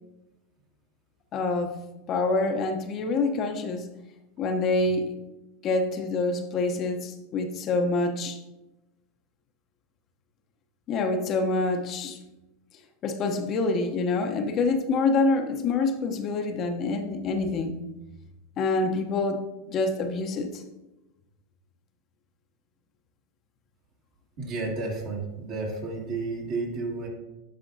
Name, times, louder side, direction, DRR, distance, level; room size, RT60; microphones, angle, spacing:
voice 1, 1.3-1.8 2.1-3.9 4.4-5.1 5.6-8.4 10.9-12.2 13.0-17.8 18.6-19.4 19.7-20.6, left 3 dB, 40° left, 5 dB, 0.8 m, -26 dB
voice 2, 24.4-27.1, right 3 dB, 55° right, -1 dB, 2.2 m, -32 dB
10.5 x 5.1 x 2.7 m, 1.0 s
hypercardioid pair, 100°, 0 cm